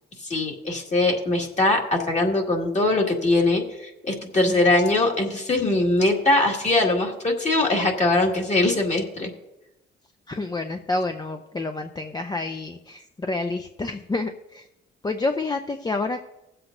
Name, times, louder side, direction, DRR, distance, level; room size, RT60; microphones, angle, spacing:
voice 1, 0.2-9.3, left 2 dB, 35° left, 1 dB, 2.0 m, -22 dB
voice 2, 10.3-14.7 15.0-16.2, left 2 dB, 20° left, 6 dB, 0.6 m, -28 dB
20.0 x 7.8 x 2.6 m, 0.94 s
cardioid pair, 90°, 20 cm